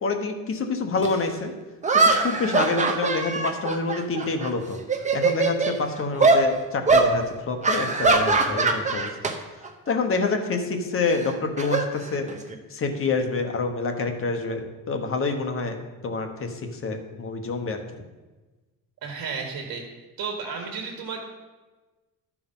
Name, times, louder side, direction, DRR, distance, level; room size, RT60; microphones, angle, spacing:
voice 1, 0.0-1.5 1.9-4.8 5.1-9.1 9.9-12.3 12.7-15.8 16.0-17.8, left 4 dB, 40° left, 5 dB, 1.1 m, -27 dB
sound 1, 1.0-1.1 1.8-4.5 4.8-5.8 6.2-6.4 6.9-7.1 7.6-9.3 9.6-9.9 11.1-12.5, right 3 dB, 20° right, 0.8 m, -22 dB
voice 2, 19.0-19.8 20.2-21.3, right 5 dB, 75° right, 2 dB, 1.6 m, -32 dB
13.0 x 4.8 x 5.5 m, 1.2 s
cardioid pair, 145°, 35 cm